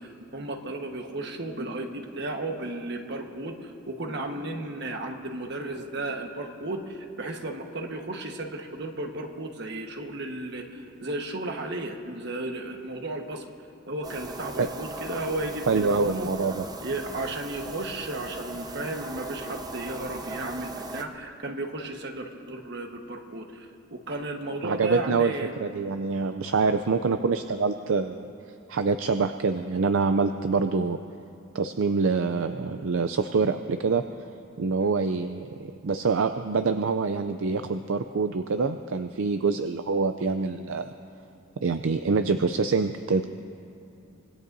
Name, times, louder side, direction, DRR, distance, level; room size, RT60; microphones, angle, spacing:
voice 1, 0.0-13.5 13.9-16.3 16.8-25.5, right 2 dB, 55° right, 3 dB, 1.3 m, -34 dB
sound 1, 14.0-21.0, right 2 dB, 20° right, 0.7 m, -38 dB
voice 2, 15.7-16.6 24.6-25.3 25.6-28.3 28.7-31.0 31.5-34.0 34.6-40.9 41.6-43.3, right 4 dB, 70° right, 8 dB, 0.5 m, -25 dB
25.5 x 20.5 x 2.7 m, 2.8 s
head